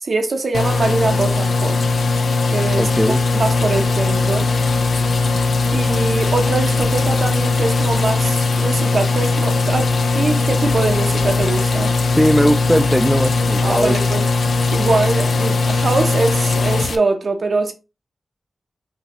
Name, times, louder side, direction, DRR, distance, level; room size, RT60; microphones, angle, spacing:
voice 1, 0.0-1.8 2.5-4.5 5.7-12.0 13.6-14.3 14.7-17.7, right 3 dB, 65° right, 0.7 m, -22 dB
sound 1, 0.5-17.0, left 3 dB, 80° left, 0.4 m, -19 dB
voice 2, 2.8-3.2 12.1-14.1, equal, ahead, 0.4 m, -18 dB
5.4 x 2.8 x 3.0 m
wide cardioid pair, 70°, 0 cm